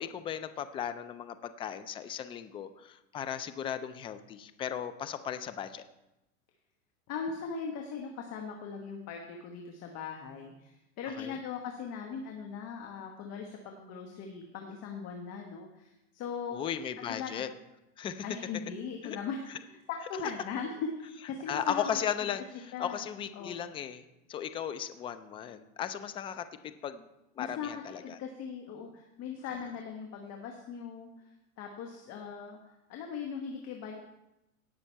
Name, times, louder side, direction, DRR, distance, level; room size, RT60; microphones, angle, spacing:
voice 1, 0.0-5.8 11.2-11.4 16.5-17.5 18.0-18.2 19.0-19.2 21.5-27.0 27.4-28.2, left 9 dB, 15° left, 10 dB, 0.3 m, -36 dB
voice 2, 7.1-16.6 17.0-17.4 18.2-21.9 22.2-22.3 22.7-23.1 23.3-23.6 27.4-27.7 28.0-32.6 32.9-34.1, left 6 dB, 35° left, 2 dB, 1.5 m, -39 dB
17.5 x 6.3 x 4.6 m, 0.93 s
hypercardioid pair, 120°, 43 cm